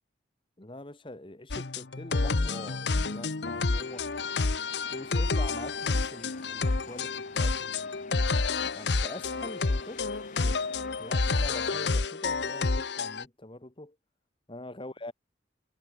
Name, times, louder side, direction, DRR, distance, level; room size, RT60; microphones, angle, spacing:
voice 1, 0.6-4.1 4.9-10.1 10.3-14.0 14.5-15.1, left 1 dB, 30° left, 1.4 m, -44 dB
sound 1, 1.5-13.2, left 3 dB, 65° left, 0.9 m, -29 dB
sound 2, 3.7-11.3, left 3 dB, 45° left, 2.1 m, -50 dB
head